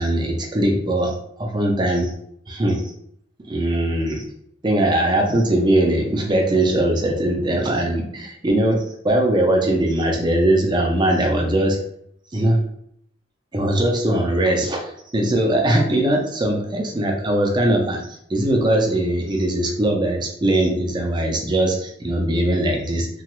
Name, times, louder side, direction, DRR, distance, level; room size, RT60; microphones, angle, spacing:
voice 1, 0.0-2.1 2.5-2.8 3.5-4.2 4.6-11.8 12.3-12.6 13.5-18.0 18.3-23.1, right 1 dB, 20° right, 1 dB, 0.5 m, -20 dB
2.9 x 2.3 x 3.0 m, 0.69 s
head